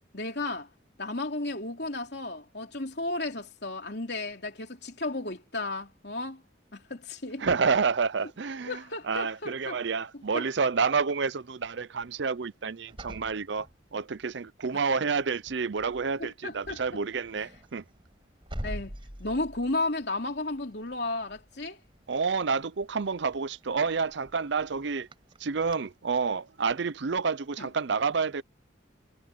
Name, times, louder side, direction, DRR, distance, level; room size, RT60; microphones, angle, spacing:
voice 1, 0.1-0.7 1.0-6.4 6.7-7.5 8.7-9.8 10.1-10.4 16.2-16.8 18.6-21.8 27.6-27.7, left 2 dB, 60° left, 3.5 m, -34 dB
voice 2, 7.4-8.8 9.1-13.7 13.9-17.8 22.1-25.1 25.4-28.4, right 5 dB, 65° right, 0.6 m, -29 dB
sound 1, 12.9-14.4 14.9-15.2 15.5-25.8, equal, 25° right, 5.3 m, -46 dB
head